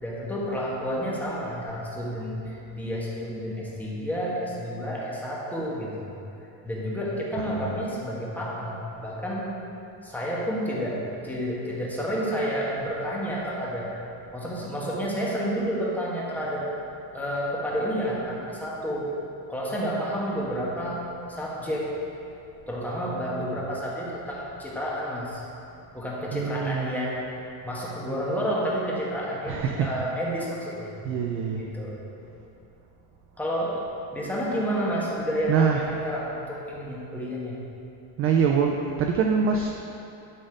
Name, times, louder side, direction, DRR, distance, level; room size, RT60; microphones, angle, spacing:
voice 1, 0.0-6.1 6.6-9.5 10.0-13.9 14.3-16.7 17.1-19.2 19.5-21.0 21.3-22.0 22.7-25.4 25.9-27.2 27.6-31.0 31.5-32.0 33.4-37.5, equal, 5° left, -5 dB, 1.2 m, -30 dB
voice 2, 7.4-7.8 26.3-26.9 29.4-29.9 31.0-31.6 35.5-36.0 38.2-39.7, right 6 dB, 35° right, 2 dB, 0.4 m, -25 dB
11.5 x 4.2 x 5.0 m, 2.8 s
cardioid pair, 155°, 40 cm